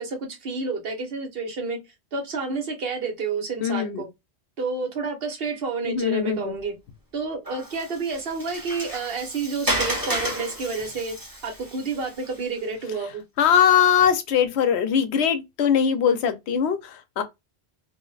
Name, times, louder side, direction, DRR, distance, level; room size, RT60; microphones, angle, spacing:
voice 1, 0.0-1.8 2.1-4.1 4.6-6.8 7.1-11.2 11.4-13.2, right 4 dB, 65° right, 1.1 m, -29 dB
voice 2, 3.6-4.0 5.9-6.4 13.4-17.2, left 8 dB, 85° left, 0.9 m, -21 dB
Water, 7.4-12.8, equal, 20° right, 1.1 m, -32 dB
2.5 x 2.1 x 3.9 m
omnidirectional pair, 1.1 m